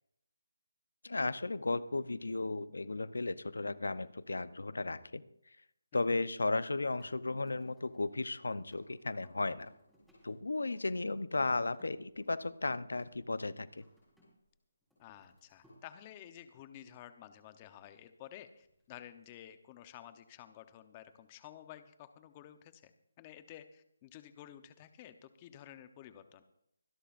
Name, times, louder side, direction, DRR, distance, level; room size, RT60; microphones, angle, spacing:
voice 1, 1.0-5.2 5.9-9.7 10.2-13.8, left 3 dB, 90° left, 15 dB, 0.8 m, -35 dB
sound 1, 7.0-14.5 14.8-15.8 18.5-19.2, equal, ahead, 6.5 m, -67 dB
voice 2, 15.0-22.9 23.2-26.4, left 11 dB, 20° left, 10 dB, 0.9 m, -52 dB
25.0 x 11.5 x 2.6 m, 0.74 s
hypercardioid pair, 170°, 0 cm